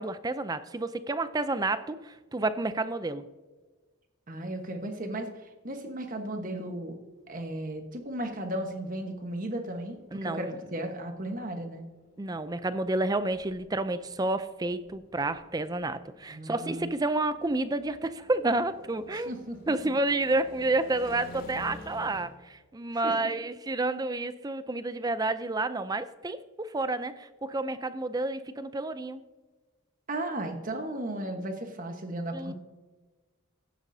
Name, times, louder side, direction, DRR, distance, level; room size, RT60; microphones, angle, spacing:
voice 1, 0.0-3.2 10.1-10.5 12.2-19.3 19.7-29.2 32.3-32.5, right 2 dB, 20° right, 13 dB, 0.4 m, -30 dB
voice 2, 4.3-7.0 7.3-11.9 16.3-16.9 19.1-19.6 22.9-23.3 30.1-32.5, right 1 dB, 40° right, 5 dB, 1.3 m, -35 dB
sound 1, 6.8-22.3, left 1 dB, 40° left, 2.3 m, -52 dB
15.0 x 10.5 x 2.7 m, 1.3 s
head